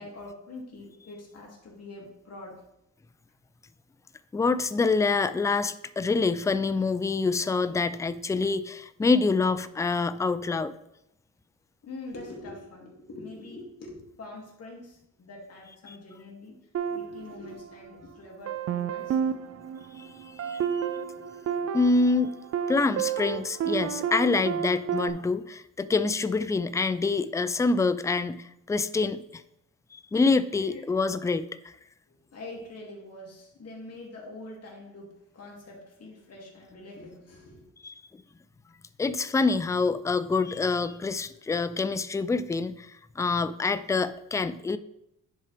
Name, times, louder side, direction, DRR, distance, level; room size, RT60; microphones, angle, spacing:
voice 1, 0.0-2.6 11.8-16.6 16.9-19.3 30.6-30.8 32.1-37.6, left 2 dB, 50° left, -2 dB, 2.4 m, -44 dB
voice 2, 4.3-10.7 15.9-16.0 20.0-20.8 21.7-22.3 22.7-29.4 29.9-31.7 37.8-37.9 39.0-44.8, left 4 dB, 10° left, 13 dB, 0.3 m, -26 dB
sound 1, 16.7-18.0 18.5-25.1, right 8 dB, 50° right, 0.5 m, -31 dB
10.0 x 4.2 x 3.4 m, 0.82 s
cardioid pair, 95°, 31 cm